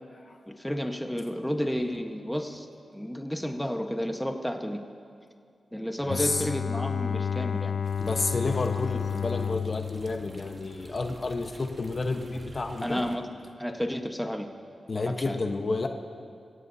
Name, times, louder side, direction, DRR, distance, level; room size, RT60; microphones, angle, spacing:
voice 1, 0.5-2.7 2.9-4.8 5.7-7.7 12.8-13.3 13.6-14.5 15.0-15.4, equal, 5° left, 4 dB, 1.2 m, -31 dB
Bowed string instrument, 6.0-11.2, left 7 dB, 65° left, 0.4 m, -31 dB
voice 2, 6.1-6.5 8.0-13.0 14.9-15.9, left 3 dB, 50° left, 5 dB, 1.1 m, -30 dB
sound 1, 7.8-13.2, right 2 dB, 45° right, 1.5 m, -49 dB
24.0 x 16.5 x 2.8 m, 2.4 s
cardioid pair, 60°, 0 cm